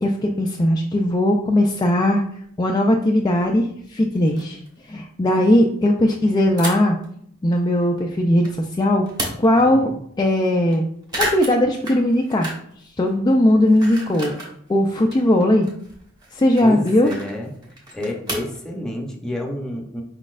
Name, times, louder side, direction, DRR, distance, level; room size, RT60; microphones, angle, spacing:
voice 1, 0.0-2.2 2.6-4.6 4.9-7.0 7.4-9.1 9.4-9.9 10.2-10.8 11.2-12.5 13.0-14.4 14.7-15.7 16.3-17.1, left 1 dB, 20° left, 1 dB, 0.3 m, -18 dB
sound 1, 2.9-3.0 3.4-3.5 3.8-3.9 4.1-4.7 6.6-7.1 7.5-8.6 8.9-9.7 10.1-10.2 10.4-10.8 11.0-12.8 13.1-14.6 14.9-18.6, right 1 dB, 20° right, 1.2 m, -32 dB
voice 2, 9.6-10.0 16.6-17.5 17.9-20.0, left 1 dB, 5° left, -1 dB, 0.7 m, -29 dB
4.9 x 4.0 x 2.4 m, 0.67 s
head